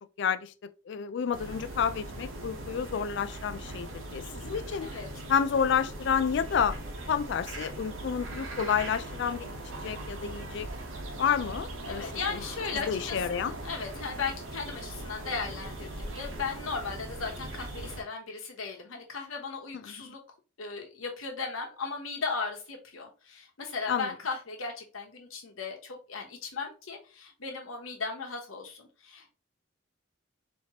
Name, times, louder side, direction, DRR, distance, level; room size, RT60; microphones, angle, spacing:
voice 1, 0.2-4.9 5.3-6.8 7.1-9.5 9.8-10.7 11.2-12.4 12.9-13.5 19.7-19.9 23.9-24.1, left 7 dB, 60° left, 0.3 m, -30 dB
sound 1, 1.3-18.0, right 1 dB, 80° right, 1.0 m, -40 dB
voice 2, 11.8-20.2 20.6-29.3, left 4 dB, 90° left, 1.1 m, -36 dB
4.3 x 2.9 x 2.9 m
head